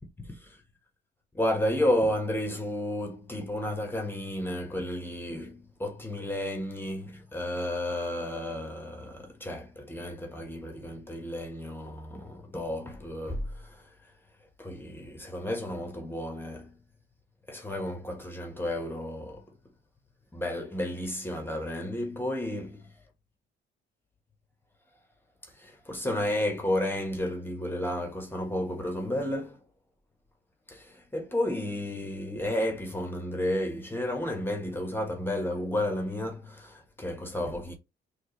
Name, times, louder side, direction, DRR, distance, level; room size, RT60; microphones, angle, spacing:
voice 1, 0.2-0.6 1.3-13.9 14.6-16.7 17.5-19.6 20.3-22.9 25.4-29.6 30.7-37.8, left 1 dB, 10° left, 1.2 m, -32 dB
4.5 x 2.5 x 3.1 m
cardioid pair, 90°, 20 cm